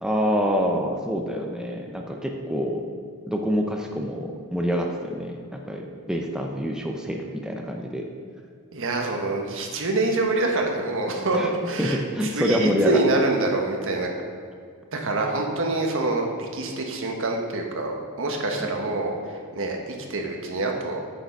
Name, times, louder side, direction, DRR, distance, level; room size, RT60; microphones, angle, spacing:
voice 1, 0.0-2.8 3.3-8.1 11.3-11.5 11.8-13.0 18.6-18.7, equal, 5° right, 1 dB, 0.6 m, -26 dB
voice 2, 8.7-11.4 11.6-12.0 12.3-14.1 14.9-21.0, right 2 dB, 60° right, 2 dB, 1.3 m, -26 dB
9.0 x 6.8 x 5.3 m, 2.2 s
head